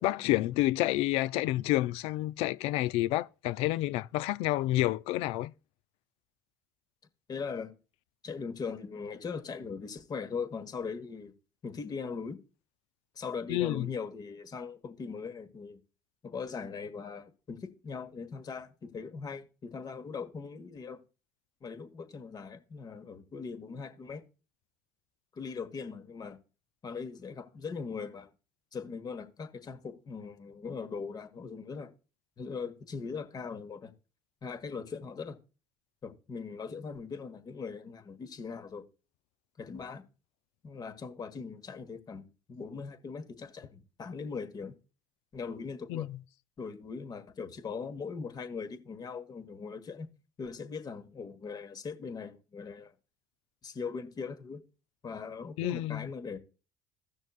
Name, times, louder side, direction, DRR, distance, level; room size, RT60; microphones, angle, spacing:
voice 1, 0.0-5.5 13.5-13.9 45.9-46.2 55.6-56.1, left 16 dB, 70° left, 0.4 m, -29 dB
voice 2, 7.3-7.7 8.2-11.3 11.6-12.4 13.1-15.8 16.2-21.0 21.6-24.2 25.3-26.4 26.8-28.3 28.7-31.9 32.4-33.9 34.4-35.4 36.0-38.8 39.6-40.0 40.6-44.7 45.3-46.1 46.6-50.1 50.4-52.9 53.6-54.6 55.0-56.4, left 5 dB, 40° left, 1.5 m, -40 dB
16.0 x 6.3 x 2.4 m
hypercardioid pair, 75°, 10 cm